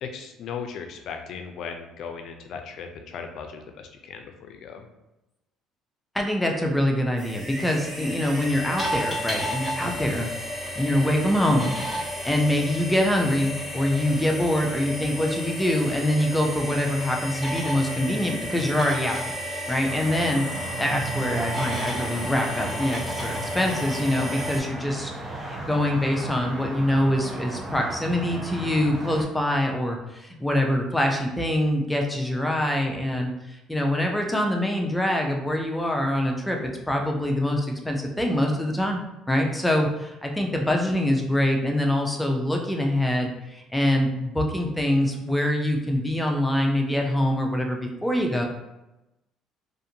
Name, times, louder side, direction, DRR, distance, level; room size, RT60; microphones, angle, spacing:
voice 1, 0.0-4.9, left 6 dB, 65° left, 5 dB, 0.4 m, -37 dB
voice 2, 6.1-10.3 10.7-11.7 12.2-19.3 19.7-20.5 20.8-39.0 39.3-48.4, left 1 dB, 5° left, 1 dB, 0.5 m, -24 dB
sound 1, 7.2-24.6, equal, 15° right, 1.3 m, -32 dB
sound 2, 19.8-29.2, right 2 dB, 45° right, 0.7 m, -35 dB
2.5 x 2.5 x 2.7 m, 0.96 s
supercardioid pair, 85°, 0 cm